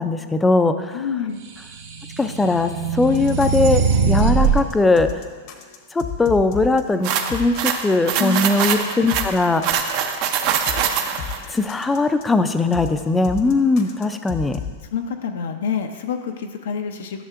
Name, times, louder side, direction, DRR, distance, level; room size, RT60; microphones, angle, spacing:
voice 1, 0.0-1.0 2.2-5.1 5.9-9.8 11.5-14.6, left 3 dB, 10° left, 9 dB, 0.4 m, -20 dB
voice 2, 0.9-1.4 8.1-8.5 14.4-14.5 14.9-17.2, left 7 dB, 80° left, 5 dB, 0.5 m, -27 dB
sound 1, 1.6-4.6, right 5 dB, 70° right, 1.2 m, -21 dB
sound 2, 3.0-14.8, left 6 dB, 55° left, 0.8 m, -35 dB
sound 3, 7.0-11.4, right 8 dB, 50° right, 0.6 m, -23 dB
11.0 x 6.5 x 2.5 m, 1.5 s
hypercardioid pair, 135°, 0 cm